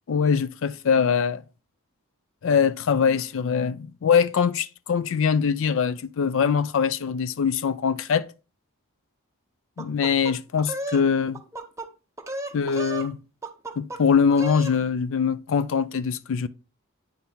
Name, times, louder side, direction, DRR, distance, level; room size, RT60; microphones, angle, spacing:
voice 1, 0.1-1.4 2.4-8.3 9.8-11.4 12.5-13.2 13.8-16.5, left 6 dB, 60° left, 0.4 m, -23 dB
sound 1, 9.8-11.0 11.3-11.9 12.2-13.1 13.4-14.0 14.3-14.8, right 1 dB, 15° right, 0.7 m, -34 dB
9.1 x 4.4 x 3.5 m
head